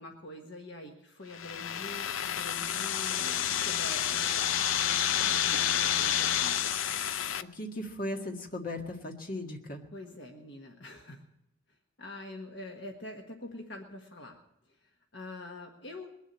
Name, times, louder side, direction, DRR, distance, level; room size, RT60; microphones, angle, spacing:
voice 1, 0.0-4.5 5.1-6.6 9.9-11.2 12.0-14.4 14.8-16.1, left 1 dB, 60° left, 2 dB, 1.5 m, -45 dB
sound 1, 1.3-7.4, left 10 dB, 85° left, 0.6 m, -29 dB
voice 2, 7.5-9.8, left 1 dB, 45° left, 2 dB, 1.8 m, -37 dB
21.0 x 7.4 x 8.7 m, 0.84 s
head